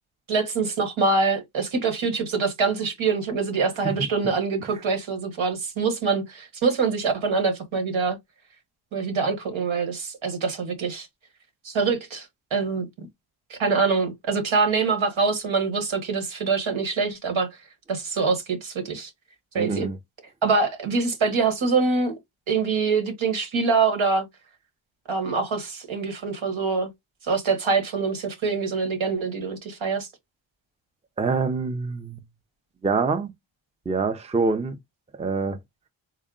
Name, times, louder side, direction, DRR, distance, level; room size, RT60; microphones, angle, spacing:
voice 1, 0.3-8.2 8.9-11.1 11.6-12.3 12.5-12.9 13.5-17.5 17.9-19.1 19.5-19.9 20.4-22.2 22.5-24.3 25.1-26.9 27.3-30.1, right 4 dB, 80° right, 1.2 m, -24 dB
voice 2, 19.6-20.0 31.2-32.2 32.8-33.3 33.9-34.8 35.2-35.6, right 4 dB, 15° right, 0.4 m, -25 dB
3.6 x 2.1 x 3.7 m
wide cardioid pair, 75°, 46 cm